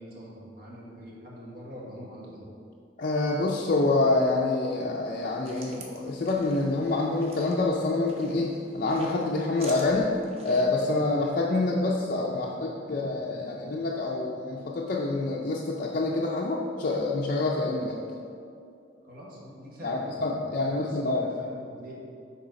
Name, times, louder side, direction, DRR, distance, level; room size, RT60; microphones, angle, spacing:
voice 1, 0.0-2.5 19.0-20.2 20.5-21.9, equal, 55° right, -4 dB, 1.5 m, -44 dB
voice 2, 3.0-10.1 10.4-18.0 19.8-21.3, left 2 dB, 50° left, -3 dB, 0.5 m, -27 dB
sound 1, 5.1-10.7, right 2 dB, 35° right, 0.8 m, -48 dB
6.5 x 3.9 x 5.1 m, 2.5 s
head